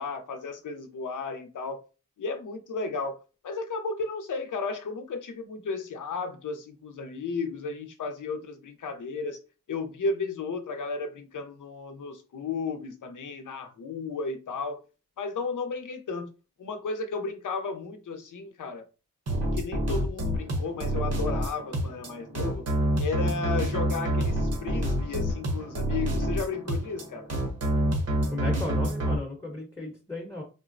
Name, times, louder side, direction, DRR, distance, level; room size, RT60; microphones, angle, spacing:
voice 1, 0.0-1.8 2.2-3.2 3.4-9.4 9.7-14.8 15.2-16.3 16.6-18.8 19.5-22.7 23.0-27.3, left 4 dB, 65° left, 0.6 m, -34 dB
sound 1, 19.3-29.1, right 1 dB, 50° right, 0.9 m, -28 dB
voice 2, 28.3-30.4, left 2 dB, 10° left, 0.8 m, -35 dB
3.7 x 2.0 x 2.5 m
cardioid pair, 65°, 33 cm